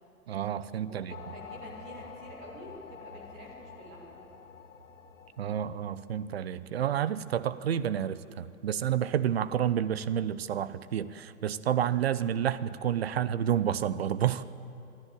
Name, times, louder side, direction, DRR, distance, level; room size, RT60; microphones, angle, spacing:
voice 1, 0.3-1.2 5.4-14.4, right 10 dB, 45° right, 16 dB, 0.7 m, -30 dB
voice 2, 0.9-4.2, right 1 dB, 5° right, -1 dB, 0.4 m, -48 dB
sound 1, 1.0-7.9, equal, 70° right, 6.1 m, -56 dB
sound 2, 1.1-6.8, left 7 dB, 60° left, 1.2 m, -49 dB
27.0 x 10.5 x 9.1 m, 2.7 s
figure-of-eight pair, 115°, 44 cm